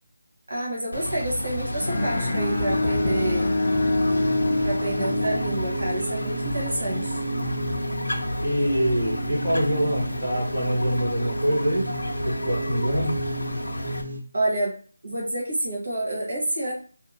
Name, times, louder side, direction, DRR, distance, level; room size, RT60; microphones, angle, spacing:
voice 1, 0.5-3.5 4.6-7.2 14.3-14.7 15.0-16.7, right 1 dB, 55° right, -3 dB, 0.9 m, -28 dB
sound 1, 0.9-14.0, left 1 dB, 80° left, 0.5 m, -31 dB
Bowed string instrument, 1.8-6.0, left 2 dB, 15° left, 0.4 m, -26 dB
sound 2, 1.9-14.2, right 2 dB, 75° right, 0.6 m, -33 dB
voice 2, 2.8-3.1 8.4-11.9 12.2-13.1, equal, 10° right, -15 dB, 1.1 m, -25 dB
2.7 x 2.4 x 2.5 m, 0.40 s
figure-of-eight pair, 180°, 0 cm